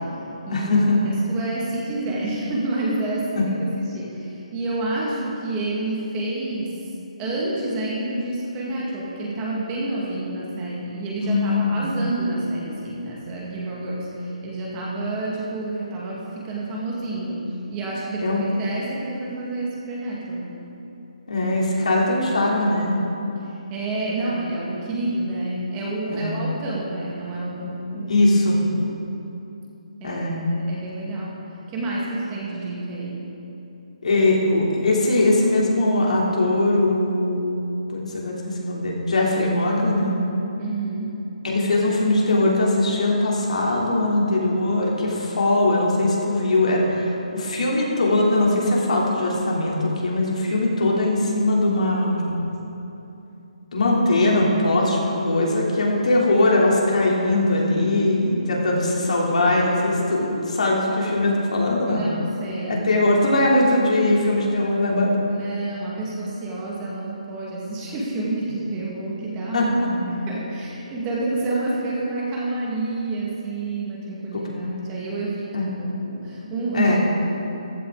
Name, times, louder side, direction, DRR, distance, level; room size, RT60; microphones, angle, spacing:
voice 1, 0.5-1.0 3.3-3.4 11.2-11.8 18.2-18.4 21.3-23.0 26.1-26.4 28.1-28.6 30.0-30.5 34.0-40.1 41.4-52.3 53.7-62.0 62.6-65.2 69.5-69.7 74.3-74.4 75.5-75.7 76.7-77.0, left 2 dB, 75° left, -3 dB, 3.2 m, -21 dB
voice 2, 1.1-6.9 7.2-17.4 17.7-20.5 23.4-28.2 28.7-29.0 30.0-31.4 31.7-33.3 40.6-41.2 61.9-62.9 65.3-77.0, right 2 dB, 15° right, -5 dB, 1.9 m, -29 dB
15.0 x 12.0 x 3.9 m, 2.9 s
hypercardioid pair, 165°, 4 cm